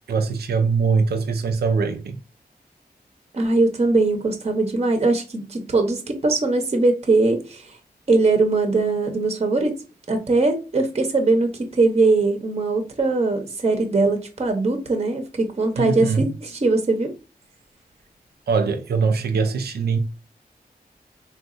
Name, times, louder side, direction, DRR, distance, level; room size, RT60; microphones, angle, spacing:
voice 1, 0.1-2.2 15.8-16.3 18.5-20.0, right 5 dB, 75° right, 0.4 m, -22 dB
voice 2, 3.3-7.8 8.1-9.7 10.1-17.1, right 3 dB, 40° right, 0.7 m, -21 dB
3.8 x 2.3 x 2.4 m
cardioid pair, 60°, 17 cm